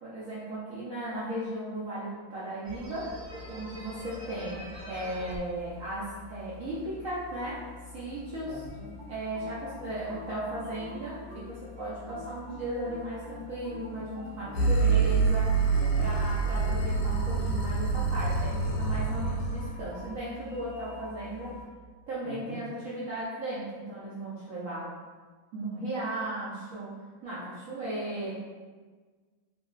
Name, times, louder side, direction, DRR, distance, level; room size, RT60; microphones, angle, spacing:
voice 1, 0.0-3.1 3.5-7.6 7.9-8.6 9.1-15.5 16.0-21.6 22.1-24.9 25.5-28.3, right 1 dB, 70° right, -9 dB, 0.8 m, -36 dB
sound 1, 2.6-21.6, left 3 dB, 15° right, 0.9 m, -46 dB
voice 2, 8.4-8.9 14.3-15.0 15.7-16.1 22.2-22.6, equal, 70° left, -10 dB, 0.4 m, -42 dB
sound 2, 9.0-11.6 12.1-14.8, left 1 dB, 85° right, 1.4 m, -47 dB
sound 3, 14.5-19.8, right 4 dB, 85° left, 1.3 m, -26 dB
3.0 x 2.6 x 2.3 m, 1.4 s
omnidirectional pair, 2.0 m